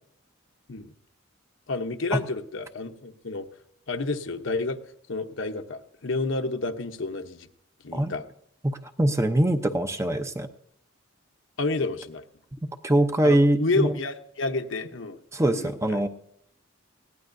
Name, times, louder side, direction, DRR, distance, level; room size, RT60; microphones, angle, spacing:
voice 1, 1.7-3.5 3.9-4.8 5.1-7.5 7.8-8.3 11.6-12.2 13.2-15.2 15.5-16.0, left 3 dB, 70° left, 7 dB, 0.9 m, -30 dB
voice 2, 8.6-10.5 12.8-13.9 15.3-16.1, right 1 dB, 15° right, 7 dB, 0.7 m, -23 dB
20.5 x 16.5 x 2.7 m, 0.72 s
head